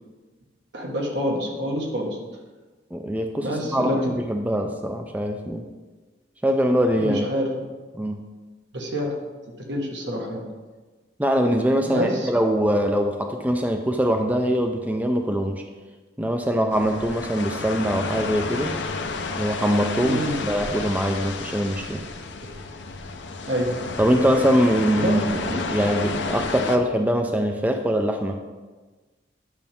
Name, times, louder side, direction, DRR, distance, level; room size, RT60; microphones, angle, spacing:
voice 1, 0.7-2.2 3.4-4.1 7.0-7.6 8.7-9.1 9.7-10.5 11.9-12.3 20.0-20.4 23.5-23.9 24.9-25.1, equal, 75° right, 0 dB, 1.6 m, -27 dB
voice 2, 2.9-5.7 6.4-7.3 7.9-8.2 11.2-15.6 16.2-18.7 19.4-22.0 24.0-28.4, equal, 10° right, 4 dB, 0.4 m, -23 dB
sound 1, 16.7-26.8, left 4 dB, 75° left, 0.7 m, -31 dB
10.5 x 5.8 x 3.5 m, 1.3 s
head